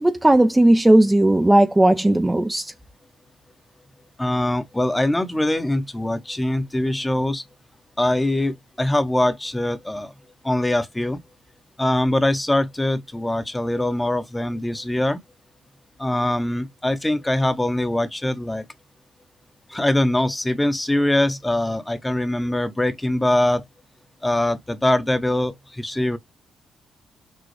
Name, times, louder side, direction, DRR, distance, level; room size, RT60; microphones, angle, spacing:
voice 1, 0.0-2.6, right 1 dB, 10° right, 0.6 m, -16 dB
voice 2, 4.2-7.4 8.0-10.1 10.4-11.2 11.8-15.2 16.0-18.6 19.7-23.6 24.2-26.2, left 1 dB, 10° left, 0.9 m, -22 dB
6.2 x 2.3 x 3.3 m
cardioid pair, 90°, 0 cm